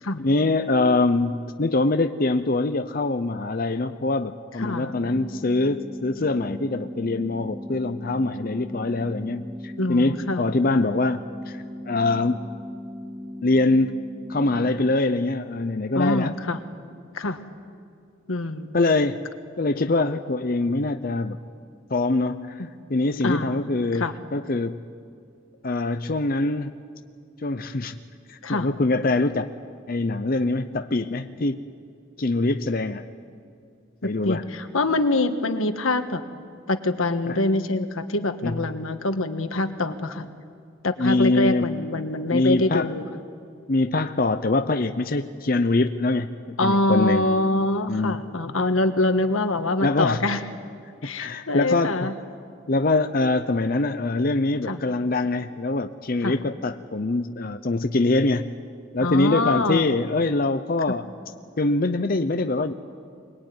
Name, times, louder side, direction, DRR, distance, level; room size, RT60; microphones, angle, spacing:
voice 1, 0.2-12.5 13.4-14.0 14.3-16.3 18.7-19.3 19.6-21.4 21.9-24.8 25.6-26.7 27.4-28.0 28.3-29.5 29.9-31.6 32.2-33.0 34.0-34.4 37.3-37.4 38.4-38.6 41.0-41.8 42.3-42.9 43.7-47.3 47.9-48.2 49.8-50.2 51.0-52.1 52.7-58.5 58.9-61.1 61.6-62.7, left 2 dB, 45° left, 8 dB, 0.7 m, -24 dB
voice 2, 4.6-4.9 9.8-10.5 15.9-16.6 17.1-17.4 18.3-18.7 22.6-22.7 23.2-23.5 23.9-24.1 28.4-28.7 34.0-36.2 36.7-40.3 40.8-43.0 46.6-50.4 51.0-52.2 54.7-54.8 56.2-56.4 59.0-59.9, left 2 dB, 85° left, 8 dB, 1.5 m, -24 dB
sound 1, 4.6-14.6, left 1 dB, 60° right, 6.4 m, -37 dB
24.0 x 20.5 x 9.5 m, 2.3 s
head